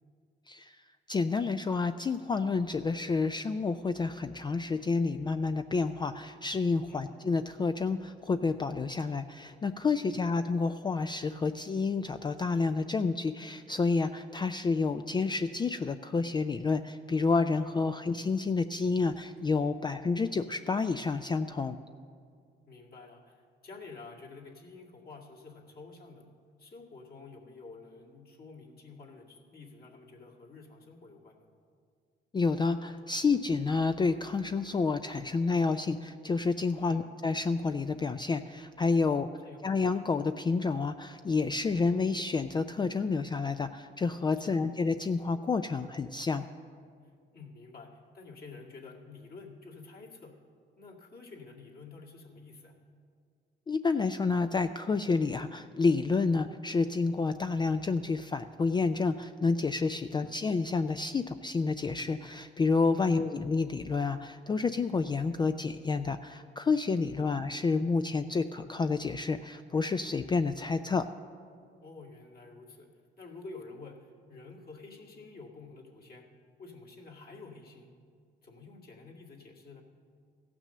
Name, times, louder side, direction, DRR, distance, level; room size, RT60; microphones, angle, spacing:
voice 1, 1.1-21.8 32.3-39.3 39.6-46.5 53.7-71.0, left 4 dB, 25° left, 9 dB, 0.3 m, -29 dB
voice 2, 22.7-26.2 26.6-31.5 36.8-37.0 39.0-39.7 44.4-44.6 47.3-50.3 50.8-52.7 60.0-60.4 62.9-63.2 67.2-67.3 71.8-72.9 73.2-76.3 76.6-78.0 78.4-79.8, left 3 dB, 50° left, -3 dB, 2.2 m, -49 dB
15.0 x 6.1 x 6.7 m, 2.1 s
cardioid pair, 90°, 20 cm